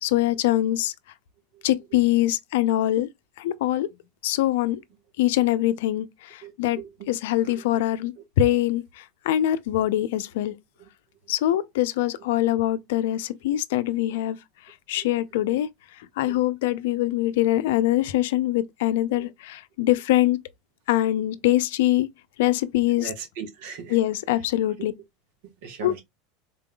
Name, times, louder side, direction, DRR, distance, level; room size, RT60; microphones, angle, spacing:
voice 1, 0.0-0.9 1.6-3.1 3.4-3.9 4.2-4.8 5.2-6.8 7.1-10.5 11.3-14.4 14.9-15.7 16.2-20.4 20.9-22.1 22.4-23.1 23.9-24.9 25.8-25.9, left 14 dB, 75° left, 0.5 m, -23 dB
voice 2, 6.4-7.1 7.4-7.7 10.8-10.9 11.2-11.3 14.9-15.1 15.5-15.6 16.2-16.4 19.2-19.3 23.0-24.0 25.4-26.0, right 6 dB, 70° right, 1.5 m, -40 dB
4.0 x 3.7 x 2.3 m
hypercardioid pair, 105°, 0 cm